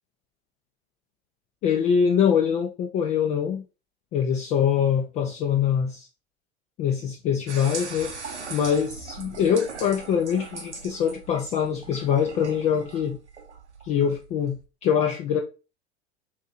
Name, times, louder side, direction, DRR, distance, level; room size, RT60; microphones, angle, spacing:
voice 1, 1.6-3.6 4.1-6.1 6.8-8.1 8.5-13.2 13.8-15.4, left 8 dB, 20° left, 0.3 m, -24 dB
sound 1, 7.5-14.7, right 4 dB, 80° right, 0.7 m, -40 dB
2.9 x 2.7 x 3.6 m
figure-of-eight pair, 80°, 34 cm